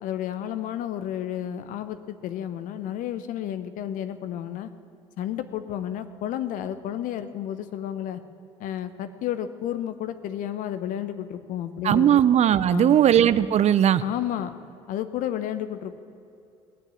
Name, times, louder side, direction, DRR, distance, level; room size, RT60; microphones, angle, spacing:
voice 1, 0.0-4.7 5.2-8.2 8.6-12.2 12.7-13.0 14.0-14.5 14.9-16.0, left 11 dB, 70° left, 12 dB, 0.8 m, -31 dB
voice 2, 11.8-14.0, right 10 dB, 50° right, 16 dB, 0.5 m, -18 dB
18.5 x 7.0 x 9.2 m, 2.7 s
hypercardioid pair, 60°, 14 cm